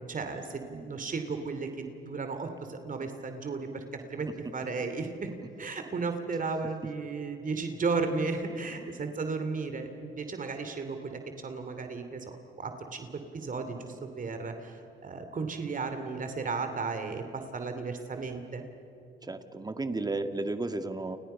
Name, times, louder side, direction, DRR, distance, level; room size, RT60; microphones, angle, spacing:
voice 1, 0.0-5.3 5.6-18.6, right 4 dB, 40° right, 7 dB, 2.9 m, -34 dB
voice 2, 19.2-21.2, right 2 dB, 20° right, 8 dB, 2.0 m, -33 dB
30.0 x 29.0 x 5.7 m, 2.8 s
cardioid pair, 90°, 20 cm